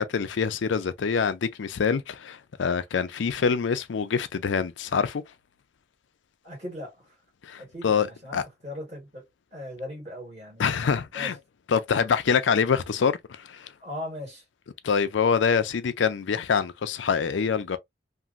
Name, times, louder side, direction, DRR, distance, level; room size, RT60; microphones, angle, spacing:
voice 1, 0.0-5.2 7.4-8.1 8.3-8.4 10.6-11.3 11.7-13.7 14.8-17.8, left 6 dB, 85° left, 0.4 m, -25 dB
voice 2, 6.4-7.2 7.6-10.6 11.1-11.4 13.8-14.4, left 1 dB, 35° right, 1.6 m, -39 dB
2.9 x 2.5 x 2.4 m
head